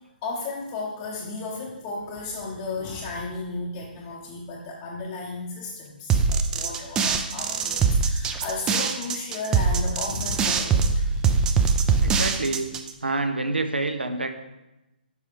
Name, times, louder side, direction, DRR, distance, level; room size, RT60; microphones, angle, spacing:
voice 1, 0.2-11.9, left 3 dB, 30° left, -3 dB, 0.7 m, -34 dB
sound 1, 6.1-12.9, right 5 dB, 15° right, 0.3 m, -22 dB
voice 2, 12.0-12.7 13.0-14.4, right 2 dB, 90° right, 8 dB, 0.6 m, -27 dB
6.8 x 4.7 x 3.0 m, 0.96 s
figure-of-eight pair, 135°, 5 cm